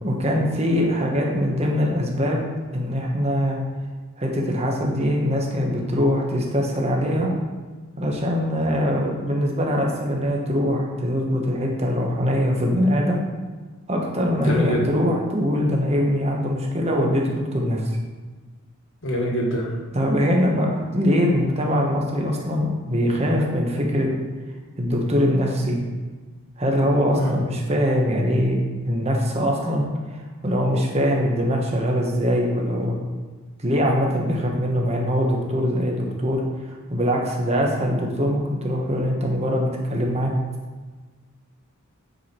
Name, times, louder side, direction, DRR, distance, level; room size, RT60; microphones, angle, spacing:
voice 1, 0.0-2.4 2.7-3.6 4.2-7.3 8.0-13.2 13.9-17.8 19.9-24.1 24.8-25.8 26.6-29.9 30.4-33.0 33.6-40.3, equal, 30° right, 0 dB, 1.3 m, -22 dB
voice 2, 14.4-14.9 19.0-19.7 27.2-27.3, equal, 60° left, -1 dB, 1.8 m, -24 dB
9.4 x 4.9 x 4.6 m, 1.3 s
head